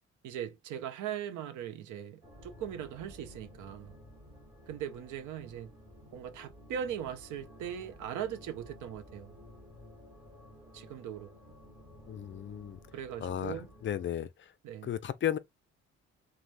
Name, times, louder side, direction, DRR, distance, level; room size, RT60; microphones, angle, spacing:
voice 1, 0.2-3.9 4.7-5.7 6.1-9.4 10.7-11.3 12.9-13.7 14.6-14.9, right 9 dB, 80° right, 0.6 m, -40 dB
sound 1, 2.2-14.1, left 1 dB, 10° right, 1.1 m, -54 dB
voice 2, 12.1-12.8 13.2-14.3 14.8-15.4, left 10 dB, 40° left, 0.4 m, -34 dB
3.2 x 2.2 x 2.4 m
cardioid pair, 90°, 30 cm